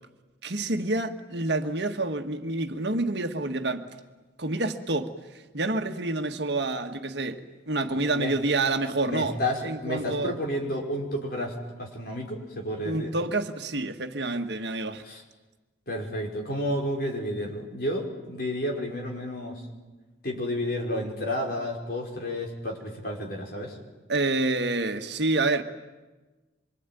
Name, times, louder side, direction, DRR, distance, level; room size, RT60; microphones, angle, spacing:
voice 1, 0.4-3.8 4.4-9.4 9.6-10.3 12.8-15.0 24.1-25.6, right 2 dB, 60° right, 1.6 m, -28 dB
voice 2, 7.9-8.3 9.0-13.1 15.0-15.2 15.9-19.6 20.2-23.8, left 1 dB, 50° left, 5.3 m, -31 dB
26.0 x 24.0 x 9.2 m
head